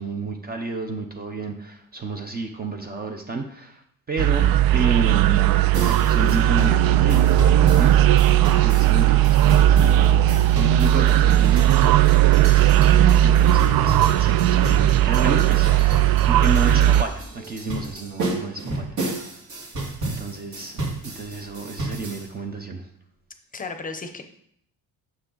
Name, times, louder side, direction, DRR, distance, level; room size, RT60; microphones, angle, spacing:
voice 1, 0.0-3.8 4.1-4.5 4.7-5.5 5.9-7.2 7.7-8.0 8.3-12.1 13.2-19.2 19.6-19.7 20.0-20.8 21.1-22.9, right 3 dB, 25° right, 3 dB, 0.6 m, -31 dB
sound 1, 4.2-17.0, right 12 dB, 70° right, 0.5 m, -17 dB
sound 2, 5.7-22.3, right 2 dB, 50° right, 2.3 m, -32 dB
voice 2, 12.1-12.5 23.5-24.2, left 4 dB, 20° left, 7 dB, 0.7 m, -36 dB
9.5 x 7.0 x 3.9 m, 0.68 s
cardioid pair, 170°, 37 cm